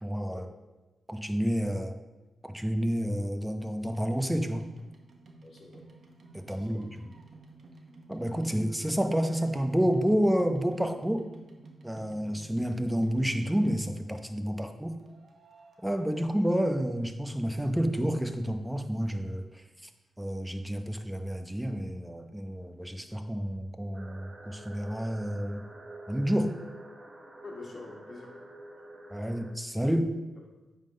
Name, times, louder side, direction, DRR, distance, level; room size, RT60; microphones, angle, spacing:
voice 1, 0.0-0.4 1.1-1.9 2.4-4.7 6.3-7.1 8.1-11.3 11.8-15.0 15.8-19.9 20.2-25.6 26.1-26.5 29.1-30.1, equal, 5° right, 7 dB, 0.8 m, -29 dB
sound 1, 3.8-14.2 15.0-17.1 17.4-18.3 18.9-19.0 19.1-19.2 19.4-19.5 20.0-20.1 20.3-20.4, right 3 dB, 60° right, 1.1 m, -52 dB
voice 2, 5.4-5.9 6.5-6.8 27.4-28.4, left 3 dB, 55° left, 0 dB, 1.7 m, -46 dB
sound 2, 23.9-29.5, right 1 dB, 35° right, 1.2 m, -48 dB
8.8 x 3.8 x 5.2 m, 1.1 s
cardioid pair, 55°, 0 cm